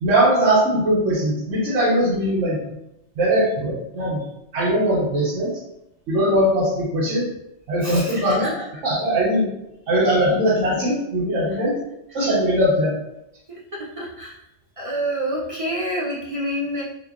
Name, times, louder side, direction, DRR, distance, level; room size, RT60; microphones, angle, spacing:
voice 1, 0.0-2.6 3.2-4.2 4.5-5.5 6.1-7.3 7.7-8.5 8.8-9.5 9.9-11.8 12.1-12.9, right 1 dB, 85° right, -7 dB, 1.1 m, -20 dB
voice 2, 7.8-8.7 13.5-14.4 14.8-16.8, equal, 50° right, -5 dB, 0.4 m, -28 dB
4.8 x 2.2 x 2.3 m, 0.86 s
omnidirectional pair, 1.2 m